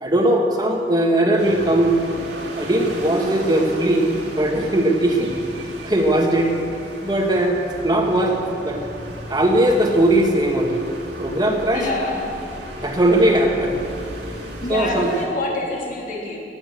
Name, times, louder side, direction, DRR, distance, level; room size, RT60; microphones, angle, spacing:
voice 1, 0.0-1.9 2.6-4.1 4.3-5.3 5.8-6.5 7.0-7.6 7.8-8.4 8.6-8.8 9.3-10.8 11.2-11.9 12.8-13.8 14.7-15.1, right 1 dB, 25° right, 2 dB, 1.6 m, -19 dB
sound 1, 1.4-15.3, right 1 dB, 85° right, 2.7 m, -35 dB
voice 2, 11.7-12.2 12.6-12.8 14.6-16.4, left 2 dB, 50° left, -3 dB, 3.2 m, -27 dB
17.0 x 8.8 x 7.7 m, 2.5 s
head